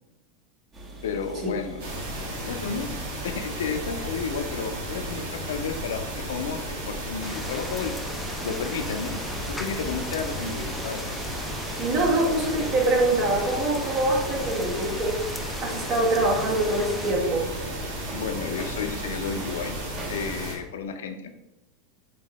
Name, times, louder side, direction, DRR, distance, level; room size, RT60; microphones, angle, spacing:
sound 1, 0.7-20.4, right 2 dB, 30° right, 1.1 m, -43 dB
voice 1, 1.0-1.8 2.4-3.0 3.2-6.6 6.9-7.9 8.2-9.2 9.5-11.1 18.1-19.8 20.1-21.3, left 6 dB, 75° left, 7 dB, 0.5 m, -32 dB
sound 2, 1.8-20.6, right 1 dB, 75° right, 1.3 m, -34 dB
sound 3, 7.2-17.1, left 1 dB, 5° left, 0.4 m, -38 dB
voice 2, 11.8-17.5, right 2 dB, 50° right, -3 dB, 1.4 m, -24 dB
4.5 x 3.4 x 3.0 m, 0.93 s
hypercardioid pair, 95°, 0 cm